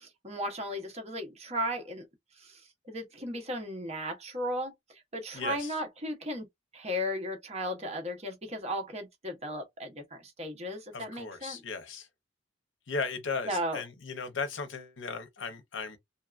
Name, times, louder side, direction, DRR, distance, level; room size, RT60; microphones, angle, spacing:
voice 1, 0.0-2.1 2.9-4.7 5.1-6.5 6.7-11.6 13.5-13.8, equal, 35° right, 0.9 m, -35 dB
voice 2, 5.3-5.7 10.9-12.1 12.9-16.0, left 4 dB, 85° left, 0.7 m, -36 dB
2.7 x 2.3 x 2.4 m
head